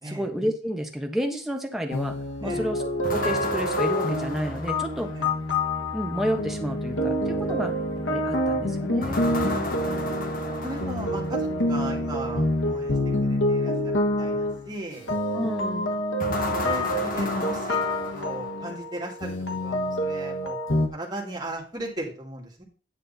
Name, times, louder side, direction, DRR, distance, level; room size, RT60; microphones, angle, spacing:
voice 1, 0.0-2.1 2.4-2.8 3.1-5.1 5.9-7.7 8.1-9.2 15.3-15.9, equal, ahead, 3 dB, 1.1 m, -30 dB
sound 1, 1.9-20.9, left 1 dB, 85° left, 1.4 m, -27 dB
sound 2, 3.0-5.4 9.0-11.5 16.2-18.8, left 2 dB, 45° left, 1.1 m, -33 dB
voice 2, 9.3-10.1 10.6-13.0 13.2-15.1 16.6-17.8 18.1-19.3 19.6-20.6 20.9-22.6, right 1 dB, 20° right, -2 dB, 2.4 m, -37 dB
9.8 x 6.7 x 4.1 m, 0.38 s
head